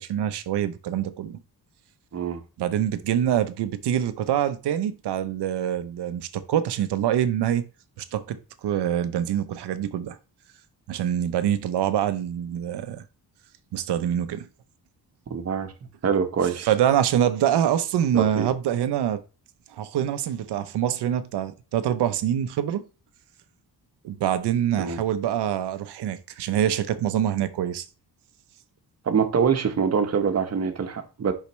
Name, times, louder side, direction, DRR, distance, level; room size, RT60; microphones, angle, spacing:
voice 1, 0.0-1.4 2.6-7.6 8.0-10.2 10.9-13.0 13.7-14.5 16.6-19.2 19.7-22.9 24.0-27.8, right 10 dB, 85° right, 0.7 m, -25 dB
voice 2, 15.3-15.7 16.0-16.7 18.1-18.5 24.8-25.0 29.0-31.3, right 6 dB, 40° right, 1.0 m, -24 dB
8.3 x 5.7 x 3.1 m
wide cardioid pair, 130°, 39 cm